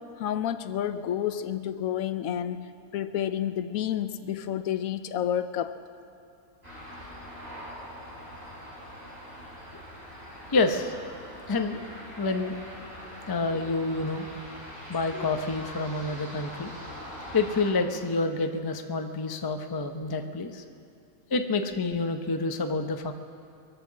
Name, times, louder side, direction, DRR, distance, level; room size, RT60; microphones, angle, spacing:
voice 1, 0.0-2.7 2.9-5.7, left 10 dB, 75° left, 12 dB, 1.0 m, -30 dB
sound 1, 6.6-17.7, equal, 40° right, 4.4 m, -43 dB
voice 2, 10.5-10.9 11.5-11.8 12.2-12.6 13.3-14.3 14.9-16.7 17.3-20.6 21.3-23.1, left 3 dB, 30° left, 6 dB, 0.4 m, -28 dB
23.0 x 7.8 x 7.3 m, 2.5 s
omnidirectional pair, 1.6 m